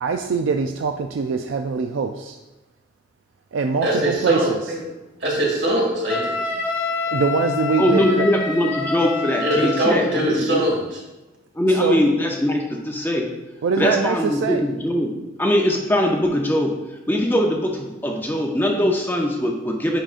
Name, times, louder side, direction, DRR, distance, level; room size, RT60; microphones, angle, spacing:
voice 1, 0.0-2.4 3.5-4.6 7.1-8.2 11.8-12.0 13.6-14.6, right 5 dB, 80° right, 5 dB, 0.4 m, -23 dB
voice 2, 3.8-4.8 5.2-6.3 9.4-11.0, equal, 60° right, -4 dB, 2.3 m, -22 dB
Wind instrument woodwind instrument, 6.1-10.0, left 4 dB, 90° left, 1.0 m, -26 dB
voice 3, 7.8-10.6 11.5-13.3 13.8-15.1 15.4-16.7 17.1-20.0, left 1 dB, 10° left, 0 dB, 0.5 m, -21 dB
8.9 x 5.0 x 2.5 m, 1.0 s
head